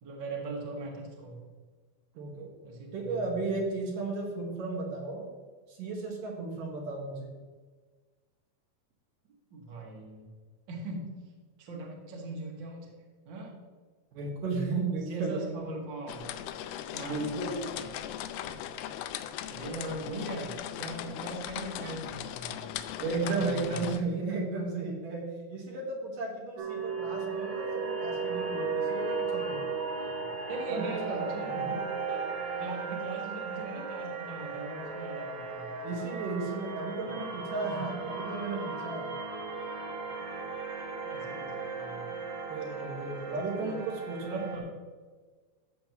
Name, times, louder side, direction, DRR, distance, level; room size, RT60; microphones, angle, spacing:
voice 1, 0.0-1.4 2.6-3.4 9.5-10.3 10.7-11.1 11.6-13.0 13.3-13.6 15.1-16.5 16.9-18.1 18.4-18.6 19.5-23.9 29.9-31.8 32.1-32.2 32.6-35.8 37.1-37.3 41.0-42.1 43.5-43.8 44.2-44.7, right 2 dB, 40° right, -2 dB, 2.0 m, -40 dB
voice 2, 2.2-2.5 2.9-5.3 5.7-7.3 14.1-15.5 17.0-17.6 23.0-29.7 30.7-31.7 35.8-39.2 42.5-44.4, right 3 dB, 65° right, -1 dB, 2.9 m, -34 dB
sound 1, 16.1-24.0, left 11 dB, 85° left, 2.4 m, -39 dB
sound 2, 26.6-44.6, right 4 dB, 85° right, 3.9 m, -36 dB
14.0 x 7.5 x 3.0 m, 1.4 s
omnidirectional pair, 4.3 m